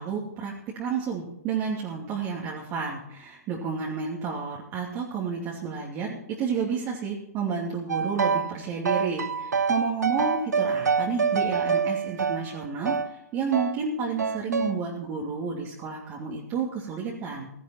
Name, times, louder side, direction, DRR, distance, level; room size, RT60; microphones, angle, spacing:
voice 1, 0.0-17.5, right 6 dB, 35° right, -2 dB, 2.7 m, -31 dB
sound 1, 7.9-8.5 8.8-13.1 13.5-13.8 14.2-14.8, right 5 dB, 85° right, 0.9 m, -26 dB
16.0 x 13.5 x 4.5 m, 0.79 s
hypercardioid pair, 125°, 9 cm